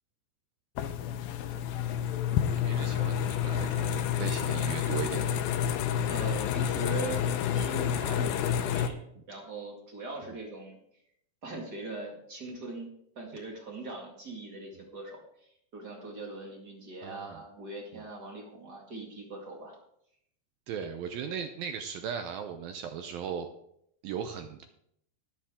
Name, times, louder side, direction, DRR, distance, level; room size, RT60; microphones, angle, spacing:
sound 1, 0.8-8.9, left 9 dB, 80° left, 2.3 m, -29 dB
voice 1, 2.6-5.5 17.0-17.4 17.9-18.0 20.7-23.5 24.0-24.6, right 7 dB, 80° right, 7 dB, 2.1 m, -37 dB
voice 2, 6.0-7.2 7.5-10.8 11.4-12.9 13.1-19.7 20.8-20.9, right 3 dB, 45° right, 0 dB, 1.4 m, -41 dB
20.0 x 7.3 x 3.6 m, 0.72 s
omnidirectional pair, 5.0 m